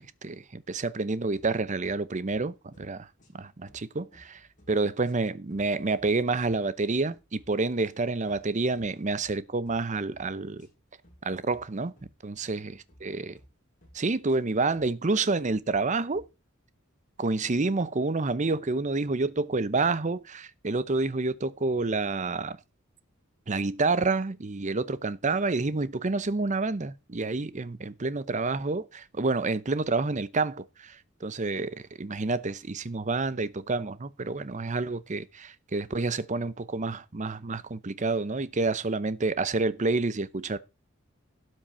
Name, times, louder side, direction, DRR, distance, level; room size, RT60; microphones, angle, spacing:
voice 1, 0.0-3.1 3.3-4.4 4.7-10.7 11.2-11.9 12.2-12.7 13.0-13.4 13.9-16.2 17.2-22.6 23.5-40.6, right 3 dB, 35° right, 0.7 m, -28 dB
sound 1, 1.3-1.9 2.3-2.5 2.7-3.4 3.7-4.7 5.0-6.1 6.4-6.6 6.9-7.5 7.8-8.0 8.3-8.8 9.2-9.4 9.7-10.2 10.6-10.8 11.0-11.6 12.0-12.2 12.4-13.0 13.3-13.5 13.8-14.4 14.7-14.9 15.2-15.8 16.1-16.3, equal, 40° left, 6.7 m, -58 dB
12.5 x 7.6 x 4.3 m
head